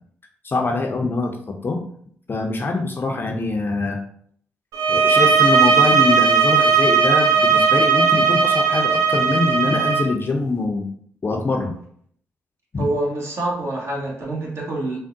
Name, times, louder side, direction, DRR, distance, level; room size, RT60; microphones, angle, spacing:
voice 1, 0.4-1.8 2.3-4.0 4.9-10.9 11.2-11.7 12.7-12.9, left 3 dB, 35° left, 2 dB, 0.5 m, -24 dB
sound 1, 4.7-10.1, right 5 dB, 70° right, 0.6 m, -17 dB
voice 2, 12.8-15.0, right 2 dB, 50° right, -2 dB, 1.0 m, -26 dB
3.6 x 2.0 x 2.6 m, 0.62 s
hypercardioid pair, 45°, 6 cm